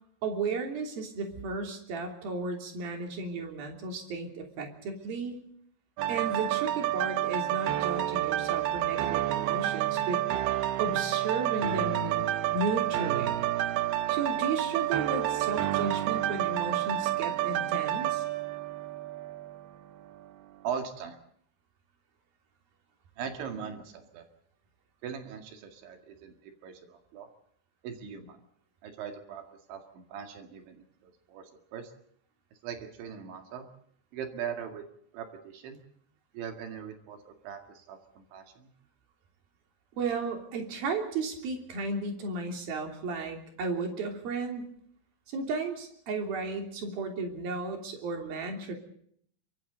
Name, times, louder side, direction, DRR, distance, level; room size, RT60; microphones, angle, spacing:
voice 1, 0.2-5.4 6.1-10.2 10.8-13.4 14.1-18.2 40.0-44.7 45.3-48.7, right 3 dB, 50° right, 3 dB, 4.5 m, -34 dB
sound 1, 6.0-19.7 20.2-20.3, right 13 dB, 80° right, 2.2 m, -29 dB
voice 2, 20.6-21.2 23.2-24.3 25.0-27.3 27.8-28.4 28.8-29.4 29.7-31.9 32.6-33.7 34.1-34.9 35.1-35.8 36.3-38.7, right 7 dB, 65° right, 5 dB, 4.2 m, -40 dB
28.0 x 24.0 x 3.9 m, 0.64 s
omnidirectional pair, 6.0 m